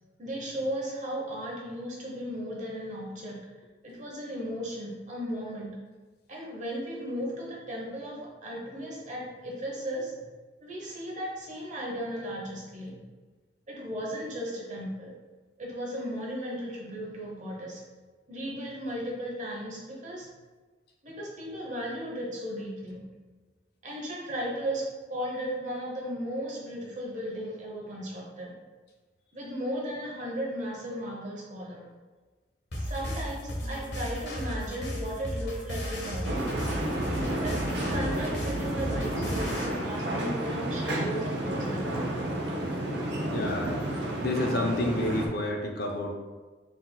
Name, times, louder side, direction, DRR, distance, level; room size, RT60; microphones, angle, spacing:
voice 1, 0.2-3.4 3.8-5.7 6.3-10.2 10.6-13.0 13.7-15.2 15.6-17.8 18.3-20.3 21.0-23.0 23.8-24.8 25.1-28.5 29.3-31.9 32.8-36.4 37.3-37.5 37.9-42.1, equal, 45° right, -3 dB, 1.0 m, -36 dB
sound 1, 32.7-39.7, equal, 85° left, 0.9 m, -34 dB
sound 2, 36.2-45.3, right 1 dB, 70° right, 0.6 m, -31 dB
voice 2, 43.3-46.2, left 1 dB, 60° left, 2 dB, 0.5 m, -30 dB
4.0 x 4.0 x 2.3 m, 1.3 s
head